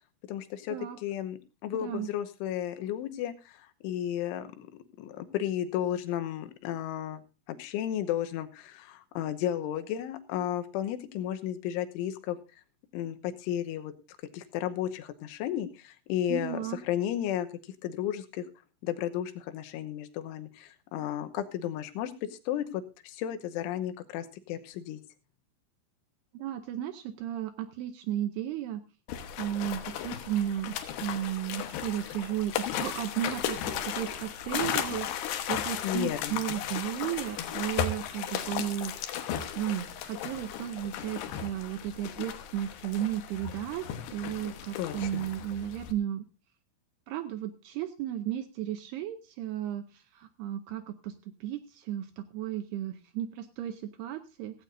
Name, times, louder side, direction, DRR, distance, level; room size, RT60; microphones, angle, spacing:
voice 1, 0.3-4.7 5.0-7.2 7.5-12.4 12.9-13.9 14.3-17.5 17.8-18.5 18.8-25.0 35.8-36.4 44.8-45.2, left 11 dB, 90° left, 9 dB, 3.4 m, -33 dB
voice 2, 16.3-16.8 26.3-28.8 29.1-43.8 44.1-46.2 47.1-54.6, right 11 dB, 80° right, 10 dB, 2.4 m, -34 dB
sound 1, 29.1-45.9, left 9 dB, 70° left, 3.0 m, -35 dB
16.0 x 16.0 x 2.6 m, 0.30 s
omnidirectional pair, 5.4 m